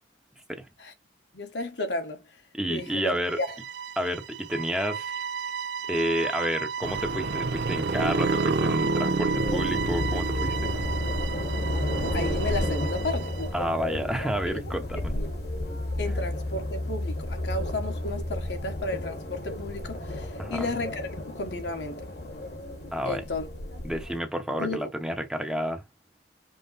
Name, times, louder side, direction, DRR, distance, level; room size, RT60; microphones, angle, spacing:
voice 1, 1.3-2.2 2.7-3.5 12.1-13.3 14.5-14.6 15.1-15.3 16.0-21.1 21.3-22.0 23.0-23.5 24.6-24.9, left 2 dB, 80° left, 1.4 m, -33 dB
voice 2, 2.5-3.4 4.0-5.2 5.9-10.7 13.5-15.1 20.4-20.7 22.9-23.3 23.8-25.8, equal, 5° right, 0.8 m, -30 dB
sound 1, 2.8-13.6, right 7 dB, 70° right, 0.4 m, -35 dB
sound 2, 6.8-12.7, right 3 dB, 85° right, 0.8 m, -29 dB
sound 3, 9.3-24.2, left 1 dB, 65° left, 1.5 m, -32 dB
5.4 x 2.1 x 4.0 m
head